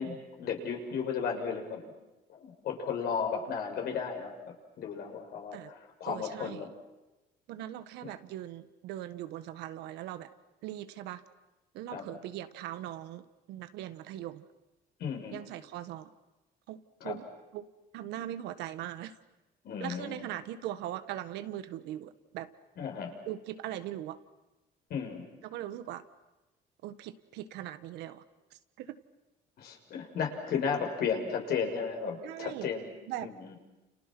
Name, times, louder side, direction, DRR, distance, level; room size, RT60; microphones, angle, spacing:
voice 1, 0.0-1.8 2.3-4.3 4.8-6.7 11.9-12.0 15.0-15.4 17.0-17.2 19.6-20.3 22.8-23.1 24.9-25.2 29.6-32.9 33.2-33.6, left 6 dB, 65° left, 3 dB, 6.0 m, -34 dB
voice 2, 6.0-6.7 7.5-10.3 10.6-11.3 11.7-14.5 15.3-16.1 16.7-17.7 17.9-19.2 19.8-22.5 23.2-24.2 25.4-26.0 26.8-28.2 28.8-29.0 32.2-32.7 33.1-33.3, right 12 dB, 90° right, 12 dB, 1.5 m, -40 dB
29.5 x 29.0 x 6.2 m, 1.0 s
cardioid pair, 110°, 17 cm